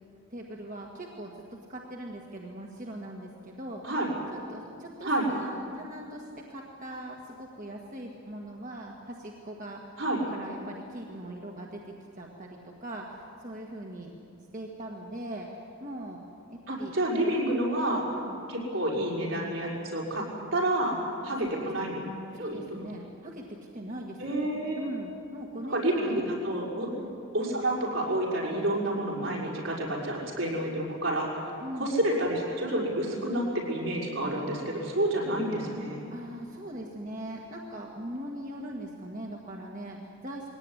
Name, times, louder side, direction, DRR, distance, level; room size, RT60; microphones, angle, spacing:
voice 1, 0.3-1.3 1.7-3.9 4.3-9.9 10.3-11.8 12.2-14.1 14.5-16.2 16.5-16.9 18.1-18.3 21.4-21.9 22.3-24.3 24.8-26.1 26.9-27.1 31.6-31.9 36.1-40.5, right 1 dB, 40° right, -1 dB, 1.8 m, -41 dB
voice 2, 16.7-18.0 18.5-20.3 20.5-22.0 22.4-22.6 24.2-24.9 25.6-26.9 27.3-31.4 31.8-36.0, right 1 dB, 75° right, -4 dB, 6.3 m, -29 dB
21.5 x 18.0 x 9.9 m, 2.5 s
head